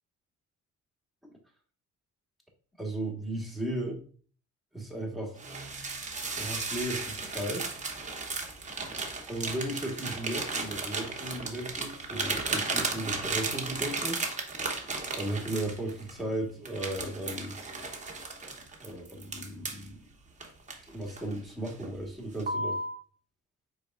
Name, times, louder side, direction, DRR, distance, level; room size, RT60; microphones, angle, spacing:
voice 1, 2.8-4.0 4.7-5.4 6.3-7.7 9.3-14.2 15.1-17.6 18.8-20.0 20.9-22.8, right 1 dB, ahead, -1 dB, 1.4 m, -35 dB
sound 1, 5.4-16.2 16.7-19.9 20.4-21.3 21.7-22.0 22.4-23.0, right 3 dB, 25° right, 0.9 m, -35 dB
5.0 x 4.3 x 2.4 m, 0.43 s
cardioid pair, 90°, 30 cm